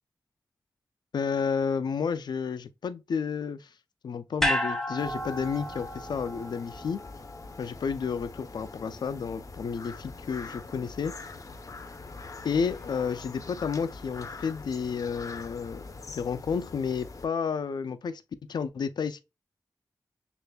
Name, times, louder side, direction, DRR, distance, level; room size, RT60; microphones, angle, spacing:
voice 1, 1.1-3.7 4.0-7.0 7.6-11.1 12.4-18.2 18.5-19.2, left 6 dB, 90° left, 0.4 m, -31 dB
sound 1, 4.4-8.7 9.1-9.2, equal, 5° left, 0.8 m, -33 dB
sound 2, 5.0-17.3, left 3 dB, 50° left, 0.7 m, -44 dB
6.5 x 2.5 x 2.2 m
wide cardioid pair, 80°, 7 cm